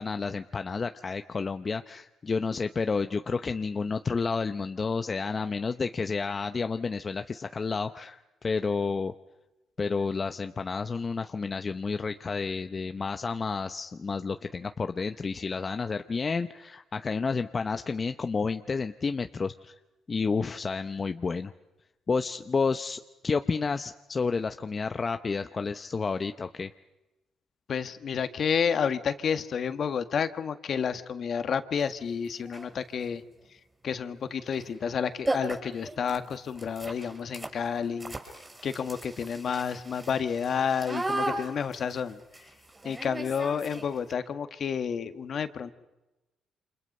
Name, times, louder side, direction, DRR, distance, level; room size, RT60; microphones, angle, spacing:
voice 1, 0.0-9.1 9.8-19.7 20.1-21.5 22.1-26.7, left 4 dB, 35° left, 8 dB, 0.8 m, -30 dB
voice 2, 27.7-33.2 33.8-38.1 38.6-42.2 42.8-45.7, left 7 dB, 55° left, 9 dB, 1.6 m, -30 dB
sound 1, 31.8-31.9 32.4-32.8 34.5-34.7 34.9-35.0 35.3-44.1, right 2 dB, 15° right, 6.1 m, -36 dB
29.0 x 27.0 x 5.5 m, 1.0 s
cardioid pair, 90°, 0 cm